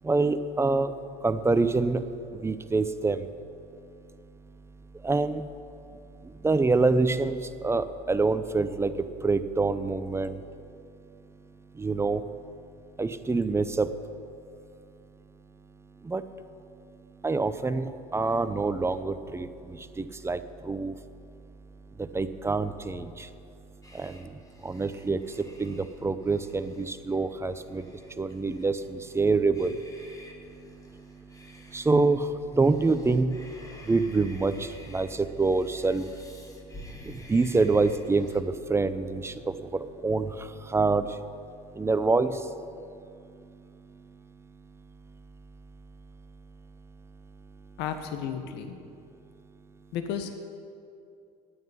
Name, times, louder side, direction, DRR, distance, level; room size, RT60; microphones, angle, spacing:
voice 1, 0.1-0.9 1.2-2.0 2.4-3.2 5.0-5.4 6.4-7.4 7.6-8.9 9.2-10.4 11.8-12.2 13.0-13.9 16.1-16.2 17.2-19.5 20.0-20.4 20.7-20.9 22.1-23.0 24.0-24.1 24.6-25.2 25.6-27.8 28.2-29.7 31.7-32.2 32.6-33.3 33.9-34.5 34.9-36.0 37.3-39.3 40.0-40.3 40.7-41.1 41.8-42.3, right 3 dB, 15° right, 12 dB, 0.6 m, -25 dB
sound 1, 23.8-38.4, left 1 dB, 15° left, 1.8 m, -51 dB
voice 2, 47.8-48.8 49.9-50.3, left 8 dB, 60° left, 7 dB, 1.1 m, -33 dB
9.7 x 9.2 x 9.7 m, 2.5 s
hypercardioid pair, 90°, 20 cm